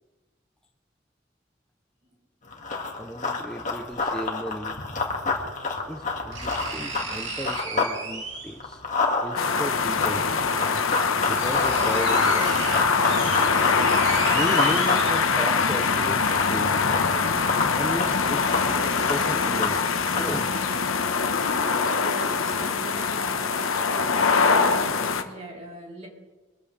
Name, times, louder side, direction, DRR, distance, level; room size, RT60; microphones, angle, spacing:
Run, 2.5-8.0 8.3-20.5, left 3 dB, 35° left, 2.0 m, -29 dB
voice 1, 2.9-4.8 5.9-8.8 9.2-10.4 11.3-12.7 14.3-16.2 16.5-16.9 17.8-19.8 20.2-20.5, equal, 5° left, 1 dB, 0.6 m, -35 dB
sound 1, 3.9-4.0 5.4-5.5 6.3-8.7 10.0-10.1 10.8-10.9 11.1-15.6 16.0-16.1, right 4 dB, 60° right, 3.1 m, -34 dB
sound 2, 9.4-25.2, left 5 dB, 80° left, 1.2 m, -23 dB
voice 2, 21.6-26.1, right 1 dB, 30° right, -2 dB, 3.6 m, -41 dB
24.0 x 14.5 x 3.4 m, 1.2 s
head